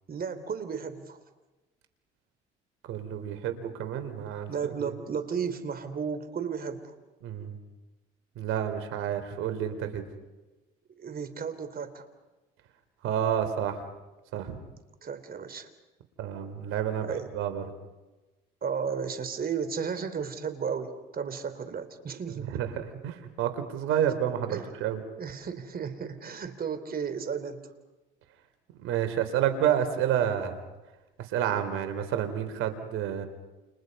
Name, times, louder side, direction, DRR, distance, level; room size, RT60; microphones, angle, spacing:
voice 1, 0.1-1.2 4.5-6.9 11.0-12.1 15.0-15.7 17.0-17.3 18.6-22.6 24.5-24.7 25.2-27.7, right 6 dB, 45° right, 10 dB, 3.8 m, -34 dB
voice 2, 2.9-4.5 4.8-4.9 7.2-7.6 8.4-10.0 13.0-13.8 14.3-14.6 16.2-17.1 17.3-17.6 22.3-22.7 23.0-25.0 28.8-30.6 31.2-33.3, right 9 dB, 80° right, 8 dB, 3.6 m, -29 dB
29.5 x 29.5 x 5.5 m, 1.1 s
supercardioid pair, 75°, 21 cm